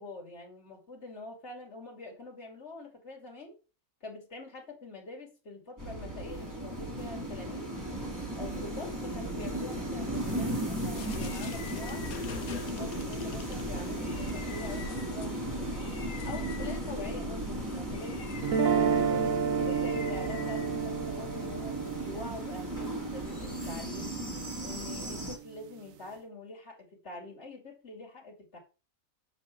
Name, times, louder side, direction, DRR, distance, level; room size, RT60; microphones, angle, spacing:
voice 1, 0.0-3.5 4.0-7.7 8.3-12.0 12.5-15.8 16.2-19.3 19.6-24.1 24.6-28.6, left 2 dB, 50° left, 2 dB, 2.6 m, -45 dB
sound 1, 5.8-25.4, right 1 dB, 15° right, 2.4 m, -36 dB
sound 2, 10.6-21.2, left 7 dB, 90° left, 1.5 m, -47 dB
sound 3, 18.4-24.5, right 6 dB, 70° right, 1.1 m, -31 dB
7.3 x 4.8 x 7.1 m, 0.33 s
omnidirectional pair, 1.5 m